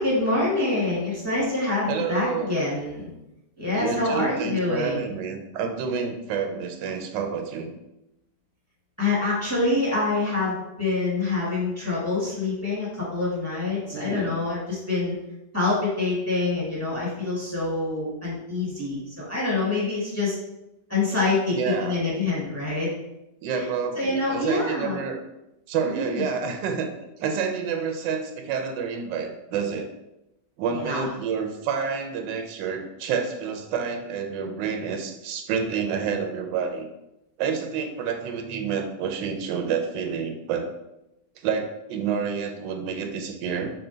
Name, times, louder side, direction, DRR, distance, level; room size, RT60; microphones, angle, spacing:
voice 1, 0.0-3.1 3.6-5.0 9.0-15.1 15.5-20.4 20.9-22.9 23.4-23.7 23.9-25.0 25.8-26.2 30.7-31.1, left 3 dB, 10° left, -6 dB, 1.0 m, -26 dB
voice 2, 1.9-2.5 3.7-7.7 13.9-14.3 21.5-22.0 23.4-25.2 25.7-26.9 27.2-29.9 30.6-36.9 37.4-40.7 41.4-43.7, right 6 dB, 85° right, 4 dB, 1.3 m, -29 dB
5.5 x 2.2 x 3.8 m, 0.90 s
omnidirectional pair, 1.9 m